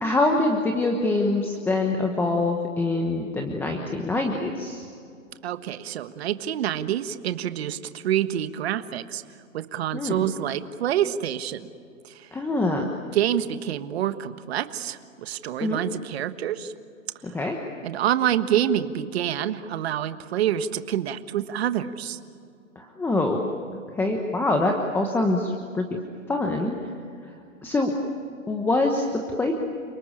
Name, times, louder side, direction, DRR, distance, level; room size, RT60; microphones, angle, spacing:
voice 1, 0.0-4.8 9.9-10.3 12.3-12.9 15.6-15.8 17.2-17.6 22.7-23.4 23.7-25.9 26.3-26.9 27.6-27.9 28.5-29.5, left 2 dB, 5° left, 2 dB, 1.2 m, -25 dB
voice 2, 5.4-9.2 9.5-11.7 12.0-12.3 13.1-16.7 17.8-22.2, right 10 dB, 50° right, 10 dB, 1.5 m, -27 dB
30.0 x 19.5 x 8.8 m, 2.5 s
hypercardioid pair, 150°, 40 cm